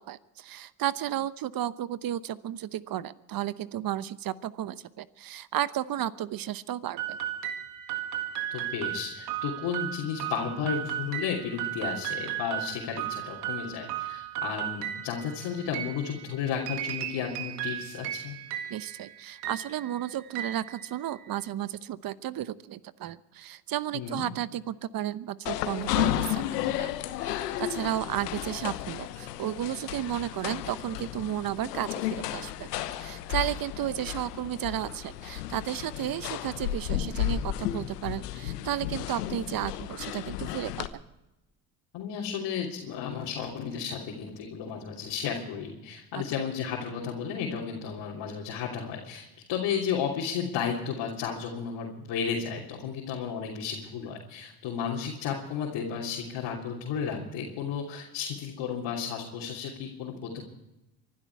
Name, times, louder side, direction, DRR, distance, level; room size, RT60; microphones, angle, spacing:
voice 1, 0.0-7.2 18.7-26.4 26.8-26.9 27.2-32.7 33.0-41.0 46.1-46.2, right 12 dB, 50° right, 16 dB, 0.9 m, -33 dB
sound 1, 7.0-21.4, right 11 dB, 85° right, 1.8 m, -36 dB
voice 2, 8.5-18.4 23.9-24.3 41.9-60.4, left 7 dB, 65° left, -3 dB, 3.2 m, -33 dB
sound 2, 25.5-40.9, left 13 dB, 90° left, 1.0 m, -33 dB
24.0 x 12.5 x 4.7 m, 0.94 s
hypercardioid pair, 65°, 46 cm